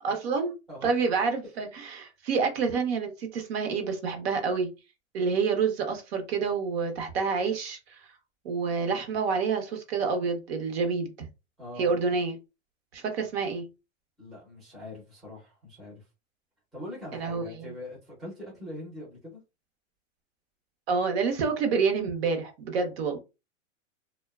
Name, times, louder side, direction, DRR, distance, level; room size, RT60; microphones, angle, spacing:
voice 1, 0.0-0.6 0.8-4.7 5.1-8.1 8.4-11.3 11.8-12.4 12.9-13.7 17.1-17.7 20.9-23.2, right 5 dB, 50° right, 0.7 m, -28 dB
voice 2, 14.2-16.0 16.7-19.4, left 1 dB, ahead, 0.5 m, -42 dB
2.6 x 2.1 x 2.2 m
supercardioid pair, 155°, 39 cm